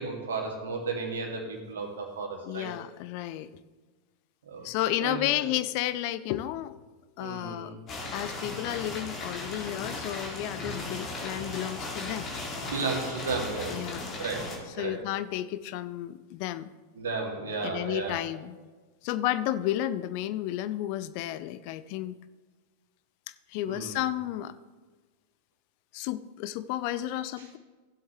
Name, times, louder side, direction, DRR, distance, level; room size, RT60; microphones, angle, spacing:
voice 1, 0.0-2.7 4.5-4.7 5.0-5.4 7.2-7.8 12.6-13.9 14.2-15.0 17.0-18.2 23.7-24.0 27.4-27.5, right 4 dB, 65° right, 1 dB, 2.1 m, -34 dB
voice 2, 2.5-3.5 4.6-6.8 7.2-7.7 8.1-12.3 13.7-14.2 14.8-16.7 17.6-18.6 19.0-22.2 23.5-24.5 25.9-27.6, left 13 dB, 45° left, 14 dB, 0.4 m, -32 dB
sound 1, 7.9-14.6, left 2 dB, 30° left, 2.4 m, -37 dB
16.0 x 7.9 x 3.1 m, 1.3 s
figure-of-eight pair, 90°, 0 cm